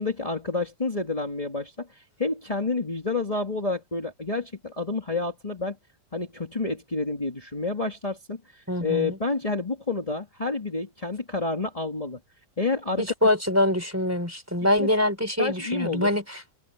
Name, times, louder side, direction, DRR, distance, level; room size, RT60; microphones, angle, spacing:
voice 1, 0.0-5.8 6.1-12.2 12.6-13.3 14.8-14.9 15.4-16.1, left 3 dB, 15° left, 1.2 m, -29 dB
voice 2, 8.7-9.2 13.0-16.4, left 1 dB, 5° right, 3.2 m, -24 dB
omnidirectional pair, 4.8 m